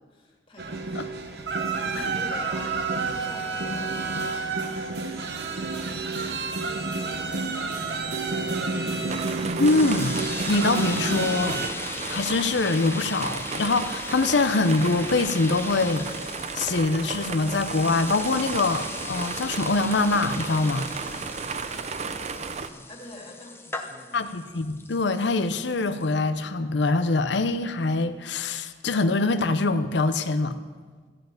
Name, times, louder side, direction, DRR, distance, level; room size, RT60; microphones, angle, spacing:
voice 1, 0.0-8.5 21.1-24.2, left 1 dB, 30° left, -1 dB, 2.3 m, -47 dB
sound 1, 0.6-11.7, right 3 dB, 60° right, 1.0 m, -29 dB
sound 2, 9.1-22.7, right 5 dB, 40° right, 0.5 m, -34 dB
voice 2, 9.6-10.2 10.5-11.6 12.1-16.1 16.5-20.9 24.1-30.6, left 3 dB, 70° left, 11 dB, 0.7 m, -24 dB
sound 3, 9.6-26.1, left 3 dB, 15° left, 0.7 m, -39 dB
14.0 x 5.7 x 8.9 m, 1.5 s
head